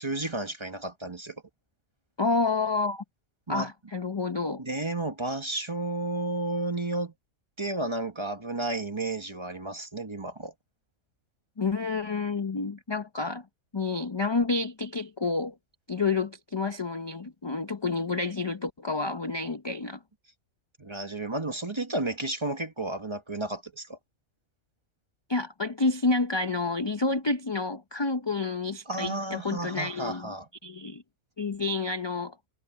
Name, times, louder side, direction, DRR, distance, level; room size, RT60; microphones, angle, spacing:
voice 1, 0.0-1.3 3.5-3.7 4.6-7.1 7.6-10.5 20.8-24.0 28.9-30.5, right 2 dB, 20° right, 1.3 m, -32 dB
voice 2, 2.2-3.0 3.5-4.6 11.6-13.5 13.7-15.5 15.9-20.0 25.3-30.3 30.6-31.0 31.4-32.4, left 3 dB, 30° left, 0.5 m, -29 dB
omnidirectional pair, 1.4 m